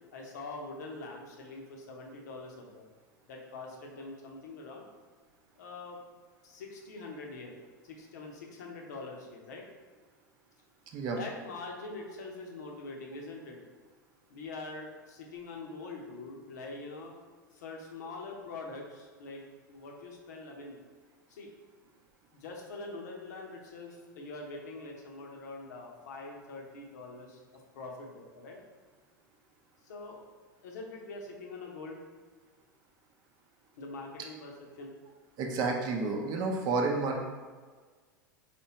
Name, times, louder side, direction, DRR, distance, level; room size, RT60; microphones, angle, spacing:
voice 1, 0.1-2.9 3.3-4.9 5.5-6.0 6.4-7.6 7.8-9.6 11.1-13.6 14.3-17.2 17.5-20.8 21.3-21.5 22.3-28.6 29.8-30.2 30.6-32.0 33.8-34.9, left 3 dB, 60° left, 0 dB, 0.8 m, -44 dB
voice 2, 35.4-37.2, right 3 dB, 40° right, 1 dB, 0.6 m, -30 dB
4.3 x 3.2 x 2.9 m, 1.5 s
figure-of-eight pair, 85°, 10 cm